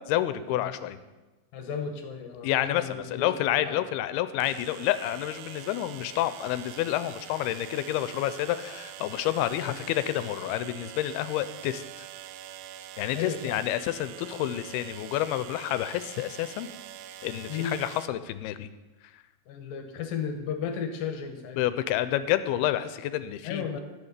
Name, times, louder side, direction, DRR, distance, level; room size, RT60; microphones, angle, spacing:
voice 1, 0.1-1.0 2.4-11.8 13.0-16.7 17.2-18.7 19.1-19.2 21.6-23.8, left 13 dB, 90° left, 12 dB, 2.5 m, -29 dB
voice 2, 1.5-3.3 3.7-3.8 9.6-9.8 13.1-13.6 17.5-17.8 19.5-21.6 23.4-23.8, left 7 dB, 75° left, 6 dB, 2.6 m, -34 dB
sound 1, 2.4-2.5 4.4-18.1, right 12 dB, 80° right, 2.2 m, -44 dB
12.0 x 7.1 x 8.1 m, 1.2 s
omnidirectional pair, 4.4 m